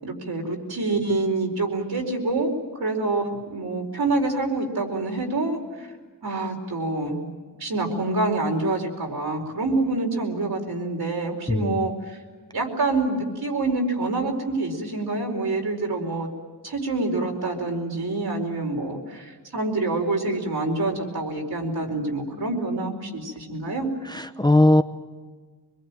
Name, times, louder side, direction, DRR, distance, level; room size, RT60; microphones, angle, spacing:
voice 1, 0.0-2.5 2.8-3.2 3.5-5.9 6.2-7.3 7.6-12.2 12.5-16.3 16.6-23.9, right 2 dB, 65° right, 2 dB, 4.6 m, -26 dB
voice 2, 11.5-11.8 24.1-24.8, left 1 dB, 10° left, 9 dB, 0.7 m, -19 dB
24.5 x 22.5 x 9.1 m, 1.4 s
wide cardioid pair, 125°, 39 cm